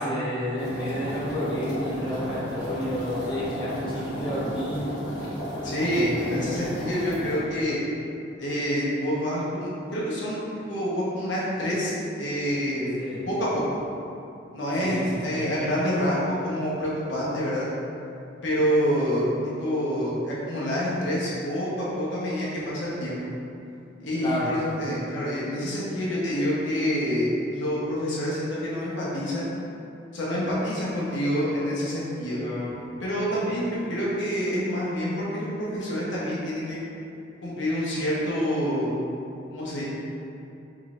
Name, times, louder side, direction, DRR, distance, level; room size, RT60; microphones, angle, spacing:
voice 1, 0.0-4.9 5.9-6.5 13.0-13.2 14.8-15.5 24.2-24.5 32.3-32.8, equal, 25° left, -10 dB, 1.1 m, -30 dB
sound 1, 0.6-7.4, equal, 50° left, 1.4 m, -34 dB
voice 2, 5.6-7.8 8.4-12.9 13.3-13.6 14.5-17.6 18.4-19.3 19.6-23.2 24.0-29.5 30.1-32.4 33.0-36.8 37.4-38.9 39.5-39.8, equal, 85° left, -7 dB, 1.0 m, -27 dB
4.5 x 3.8 x 2.5 m, 2.8 s
head